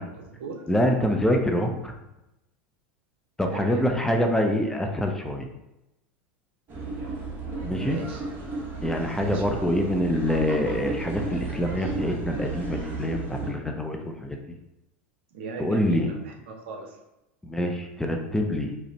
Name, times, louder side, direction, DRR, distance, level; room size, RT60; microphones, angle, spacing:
voice 1, 0.2-0.6 3.5-3.9 7.8-8.2 9.1-9.7 15.3-17.0, right 5 dB, 75° right, 3 dB, 0.6 m, -38 dB
voice 2, 0.7-1.9 3.4-5.5 7.6-8.0 8.8-14.4 15.6-16.1 17.4-18.7, left 1 dB, 10° left, 3 dB, 0.5 m, -25 dB
sound 1, 6.7-13.5, right 3 dB, 35° right, 1.0 m, -33 dB
5.0 x 2.1 x 2.8 m, 0.92 s
hypercardioid pair, 95°, 6 cm